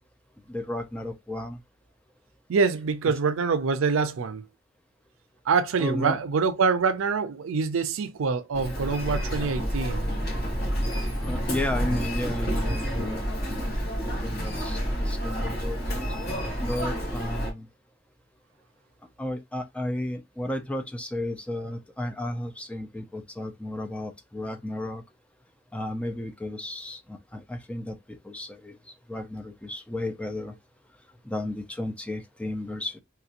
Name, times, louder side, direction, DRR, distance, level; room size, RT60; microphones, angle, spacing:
voice 1, 0.5-1.6 5.8-6.2 11.2-13.5 14.2-16.1 16.6-17.7 19.2-25.0 25.7-28.8 29.1-30.5 31.2-33.0, left 1 dB, 5° left, 0.4 m, -33 dB
voice 2, 2.5-4.4 5.5-10.1, right 5 dB, 80° right, 0.4 m, -25 dB
Human voice, 8.5-17.5, equal, 55° left, 1.7 m, -29 dB
3.1 x 2.9 x 2.5 m
head